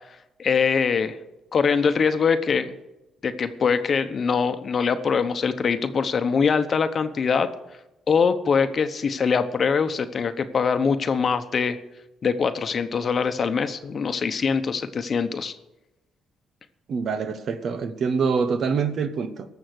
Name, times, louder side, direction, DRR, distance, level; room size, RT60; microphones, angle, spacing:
voice 1, 0.4-1.2 1.5-2.7 3.2-7.5 8.1-11.8 12.2-15.5, left 5 dB, 45° left, 9 dB, 0.9 m, -23 dB
voice 2, 16.9-19.5, right 5 dB, 60° right, 11 dB, 1.0 m, -25 dB
18.5 x 7.1 x 6.4 m, 0.98 s
cardioid pair, 90°, 0 cm